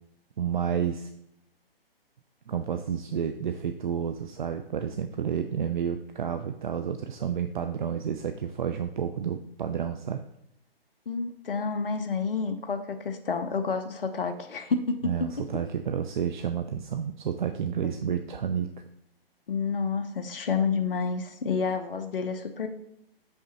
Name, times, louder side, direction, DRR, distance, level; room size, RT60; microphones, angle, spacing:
voice 1, 0.4-1.1 2.5-10.2 15.0-18.7, right 8 dB, 55° right, 7 dB, 0.4 m, -30 dB
voice 2, 11.1-15.1 19.5-22.7, left 5 dB, 65° left, 7 dB, 0.8 m, -29 dB
6.5 x 5.5 x 3.0 m, 0.78 s
figure-of-eight pair, 135°, 30 cm